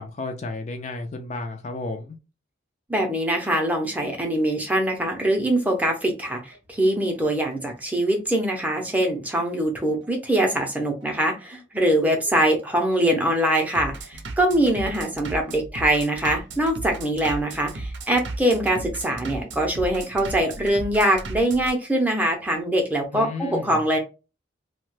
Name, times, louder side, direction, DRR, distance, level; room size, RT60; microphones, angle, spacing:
voice 1, 0.0-2.2 14.9-15.0 23.1-23.8, left 3 dB, 35° left, 5 dB, 0.3 m, -33 dB
voice 2, 2.9-24.0, right 1 dB, 10° right, 2 dB, 0.6 m, -23 dB
Bass drum, 5.8-21.7, right 2 dB, 70° right, 0.6 m, -37 dB
2.8 x 2.2 x 3.1 m, 0.30 s
head